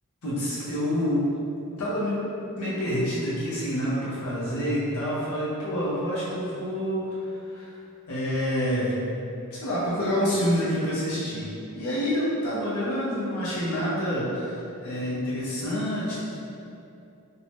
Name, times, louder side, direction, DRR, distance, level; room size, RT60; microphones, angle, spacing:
voice 1, 0.2-1.3 1.8-2.2 2.6-7.7 8.1-8.9 9.5-16.3, equal, 85° left, -8 dB, 0.7 m, -27 dB
2.6 x 2.1 x 3.2 m, 2.7 s
head